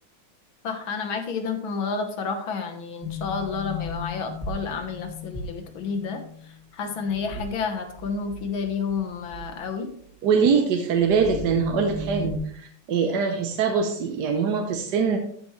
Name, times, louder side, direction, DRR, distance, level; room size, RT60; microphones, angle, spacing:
voice 1, 0.6-9.9, left 5 dB, 70° left, 5 dB, 1.8 m, -30 dB
sound 1, 3.0-6.5 7.0-7.7 8.0-8.9 9.3-9.6 11.0-12.4, left 3 dB, ahead, 1.2 m, -35 dB
voice 2, 10.2-15.2, right 6 dB, 60° right, 4 dB, 1.2 m, -23 dB
13.5 x 5.3 x 3.1 m, 0.63 s
omnidirectional pair, 2.4 m